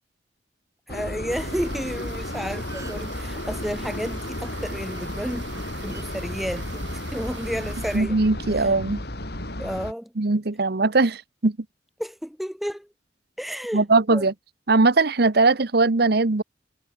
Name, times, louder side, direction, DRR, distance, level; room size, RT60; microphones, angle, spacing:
sound 1, 0.9-9.9, left 1 dB, 60° left, 4.6 m, -33 dB
voice 1, 0.9-8.2 8.6-8.7 9.6-10.1 12.0-12.9 13.4-13.8 14.1-14.3, equal, ahead, 1.1 m, -32 dB
sound 2, 1.3-8.0, right 6 dB, 85° right, 4.9 m, -43 dB
sound 3, 2.6-3.2 4.8-5.0 5.9-6.1 7.1-7.4, right 3 dB, 20° right, 3.6 m, -46 dB
voice 2, 7.9-9.0 10.2-11.6 13.7-14.3 14.7-16.4, right 3 dB, 60° right, 1.0 m, -20 dB
head